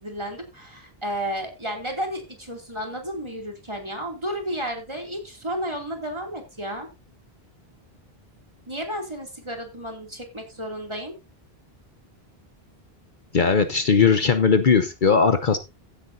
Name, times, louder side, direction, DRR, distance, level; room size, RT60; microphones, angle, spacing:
voice 1, 0.0-6.9 8.7-11.1, equal, 25° right, 3 dB, 2.7 m, -32 dB
voice 2, 13.3-15.6, left 5 dB, 55° left, 8 dB, 1.0 m, -18 dB
15.5 x 8.7 x 2.7 m, 0.24 s
omnidirectional pair, 1.1 m